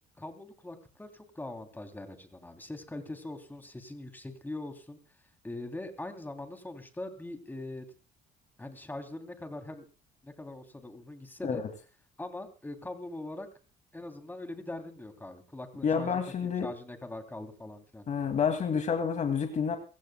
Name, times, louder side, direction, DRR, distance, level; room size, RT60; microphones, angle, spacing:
voice 1, 0.2-5.0 5.4-7.9 8.6-9.9 10.2-11.6 12.2-13.5 13.9-18.3, left 2 dB, 10° left, 6 dB, 3.2 m, -42 dB
voice 2, 15.8-16.7 18.1-19.8, left 6 dB, 45° left, 5 dB, 2.6 m, -29 dB
27.0 x 16.0 x 2.3 m, 0.34 s
cardioid pair, 110°, 17 cm